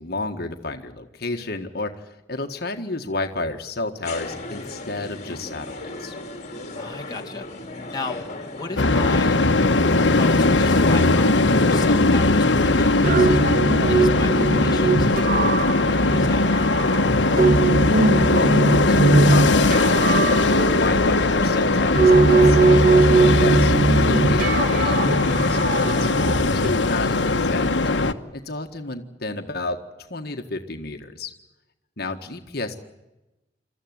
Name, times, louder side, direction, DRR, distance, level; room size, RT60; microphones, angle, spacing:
voice 1, 0.0-6.1 17.7-27.7 28.3-31.3 32.0-32.8, left 2 dB, 60° left, 4 dB, 1.7 m, -31 dB
sound 1, 4.0-9.1, left 2 dB, 40° left, 2.8 m, -36 dB
voice 2, 6.7-7.4 7.9-8.2 8.5-9.4 10.2-16.7, left 3 dB, 25° left, 1 dB, 2.2 m, -35 dB
sound 2, 8.8-28.1, left 2 dB, 90° left, 1.3 m, -19 dB
sound 3, 13.0-26.7, right 3 dB, 50° right, 2.1 m, -20 dB
28.0 x 14.0 x 9.6 m, 1.0 s
head